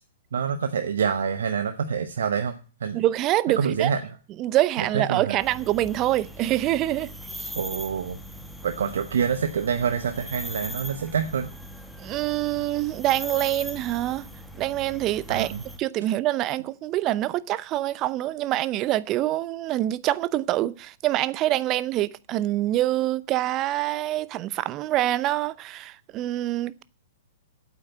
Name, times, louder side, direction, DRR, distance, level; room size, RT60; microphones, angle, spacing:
voice 1, 0.3-2.5 2.8-3.0 3.6-4.0 4.8-5.4 7.6-8.2 8.6-11.5 15.3-15.6, right 7 dB, 65° right, 0.9 m, -26 dB
voice 2, 2.9-3.9 4.4-7.1 7.4-7.5 12.0-14.3 14.6-15.5 15.8-26.8, right 14 dB, 30° right, 0.6 m, -25 dB
sound 1, 5.4-15.8, equal, ahead, 1.2 m, -40 dB
8.7 x 8.3 x 8.1 m
figure-of-eight pair, 110°, 0 cm